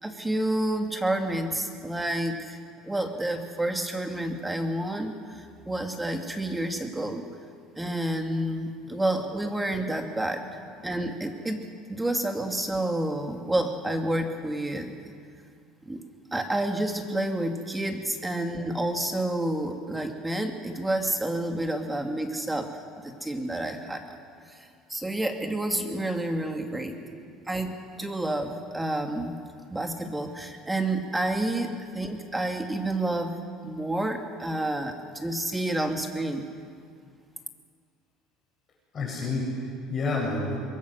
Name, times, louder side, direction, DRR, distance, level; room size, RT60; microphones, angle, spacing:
voice 1, 0.0-2.6 2.8-7.3 7.8-10.4 10.8-11.6 11.9-14.9 15.9-16.0 16.3-22.7 23.0-24.2 24.5-27.0 27.5-29.4 29.7-33.4 33.6-36.4, right 1 dB, 10° right, 4 dB, 2.4 m, -29 dB
voice 2, 26.7-27.2 29.8-29.9 33.8-33.9 36.5-36.6 38.9-40.6, left 2 dB, 35° left, -3 dB, 8.0 m, -31 dB
24.5 x 22.0 x 6.8 m, 2.2 s
cardioid pair, 120°, 0 cm